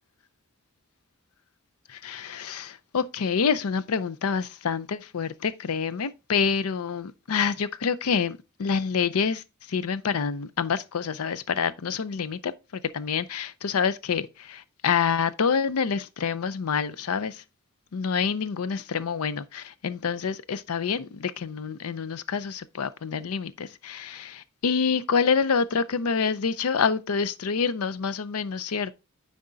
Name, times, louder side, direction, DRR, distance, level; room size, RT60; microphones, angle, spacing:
voice 1, 1.9-12.5 12.9-17.4 17.9-28.9, left 6 dB, 75° left, 0.5 m, -27 dB
9.5 x 3.6 x 3.8 m
head